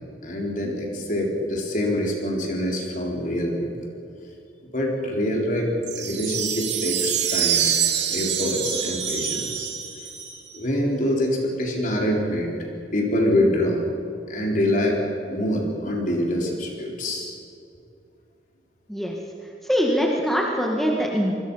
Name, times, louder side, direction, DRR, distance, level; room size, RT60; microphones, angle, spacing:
voice 1, 0.2-3.7 4.7-7.6 8.1-9.7 10.5-12.5 12.9-13.8 14.3-15.0 15.3-17.3, left 1 dB, 45° left, 0 dB, 4.3 m, -25 dB
sound 1, 5.8-10.6, right 8 dB, 80° right, 2.4 m, -26 dB
voice 2, 19.7-21.3, equal, ahead, -1 dB, 1.9 m, -22 dB
27.0 x 21.0 x 5.7 m, 2.5 s
head